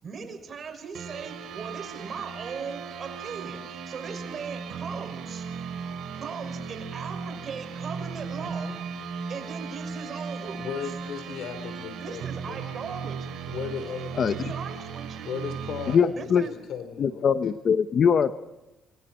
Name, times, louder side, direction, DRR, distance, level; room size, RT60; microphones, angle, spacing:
voice 1, 0.0-5.5 6.1-8.8 9.3-10.9 12.0-13.4 14.3-15.3 16.2-16.6, right 5 dB, 50° right, 7 dB, 6.0 m, -39 dB
sound 1, 0.9-16.0, right 6 dB, 80° right, 4.5 m, -37 dB
voice 2, 10.6-12.2 12.5-12.8 13.5-14.4 15.2-17.4, left 7 dB, 80° left, 9 dB, 4.1 m, -36 dB
voice 3, 15.9-16.4 17.0-18.4, left 7 dB, 55° left, 11 dB, 0.9 m, -22 dB
27.0 x 23.0 x 4.4 m, 0.96 s
cardioid pair, 90°, 0 cm